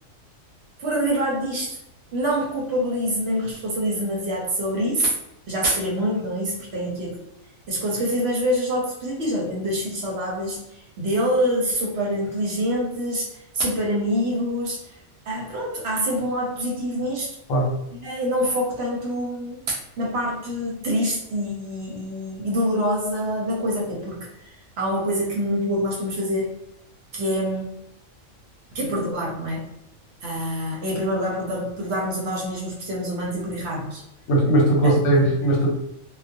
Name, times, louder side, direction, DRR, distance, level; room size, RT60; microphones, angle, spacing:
voice 1, 0.8-1.8 2.1-5.1 5.5-7.2 7.7-14.9 15.3-17.4 17.9-26.5 27.1-27.7 28.7-29.6 30.2-34.0 34.8-35.3, equal, 60° right, -3 dB, 0.8 m, -26 dB
voice 2, 34.3-35.7, right 1 dB, 80° left, -2 dB, 1.1 m, -18 dB
2.4 x 2.2 x 2.5 m, 0.80 s
omnidirectional pair, 1.4 m